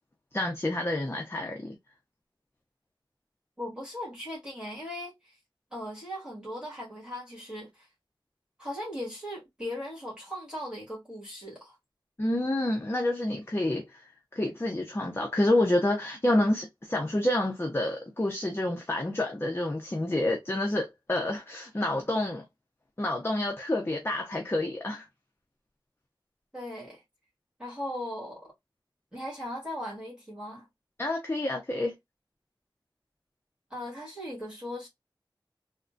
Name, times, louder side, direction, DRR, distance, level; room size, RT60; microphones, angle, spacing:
voice 1, 0.3-1.8 12.2-14.0 14.3-22.4 23.0-25.1 31.0-31.9, left 1 dB, 30° left, 0.6 m, -28 dB
voice 2, 3.6-5.4 5.7-7.9 8.6-11.8 26.5-27.0 27.6-28.5 29.1-30.7 33.7-34.9, left 1 dB, 10° right, 1.7 m, -38 dB
3.5 x 2.1 x 2.5 m
wide cardioid pair, 55°, 9 cm